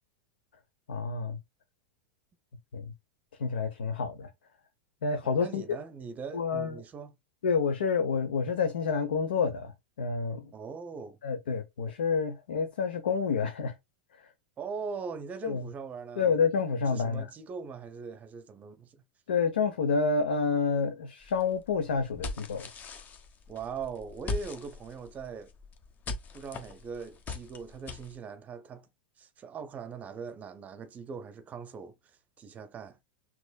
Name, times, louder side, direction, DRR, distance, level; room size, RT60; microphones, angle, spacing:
voice 1, 0.9-1.4 2.7-2.9 3.4-4.3 5.0-5.8 6.3-6.8 7.4-10.5 11.2-13.7 14.2-14.3 15.4-15.7 16.2-17.3 19.3-22.7, left 5 dB, 75° left, 0.8 m, -29 dB
voice 2, 5.2-7.1 10.5-11.2 14.6-16.3 16.9-19.0 23.5-25.5 26.3-28.9 29.2-33.0, right 5 dB, 30° right, 0.7 m, -41 dB
sound 1, 21.2-28.2, left 3 dB, 35° left, 1.0 m, -41 dB
6.0 x 2.9 x 2.2 m
hypercardioid pair, 90°, 5 cm